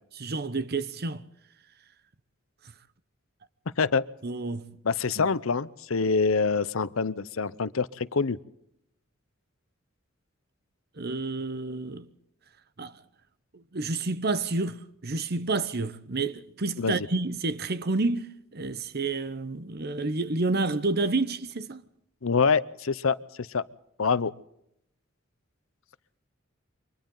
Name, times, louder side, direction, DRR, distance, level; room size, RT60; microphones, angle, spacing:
voice 1, 0.2-1.2 4.2-4.7 5.2-5.3 11.0-12.1 12.8-13.0 13.5-21.8, right 3 dB, 50° right, 1.0 m, -29 dB
voice 2, 3.8-4.1 4.8-8.4 16.8-17.0 22.2-23.7 24.0-24.3, left 5 dB, 90° left, 0.7 m, -25 dB
29.0 x 24.5 x 3.9 m
head